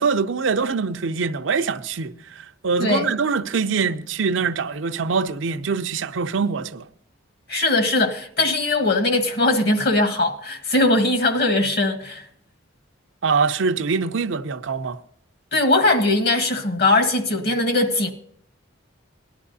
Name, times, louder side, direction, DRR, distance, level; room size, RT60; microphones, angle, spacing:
voice 1, 0.0-2.1 2.6-6.8 13.2-15.0, right 5 dB, 75° right, 0.6 m, -23 dB
voice 2, 2.8-3.1 7.5-12.2 15.5-18.1, left 2 dB, 55° left, 1.4 m, -20 dB
18.5 x 12.0 x 2.7 m
head